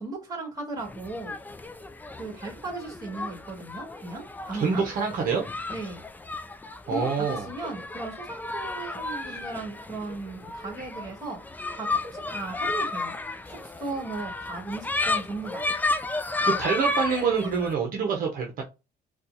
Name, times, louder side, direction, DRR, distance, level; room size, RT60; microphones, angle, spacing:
voice 1, 0.0-1.4 2.2-4.8 5.7-6.0 6.9-11.4 11.7-13.2 13.5-15.7, right 3 dB, 20° right, 1.9 m, -36 dB
sound 1, 0.8-17.7, left 3 dB, 10° left, 0.4 m, -33 dB
voice 2, 4.5-5.4 6.9-7.5 9.3-9.4 16.4-18.6, right 5 dB, 55° right, 0.8 m, -26 dB
4.3 x 2.3 x 2.7 m
cardioid pair, 110°, 17 cm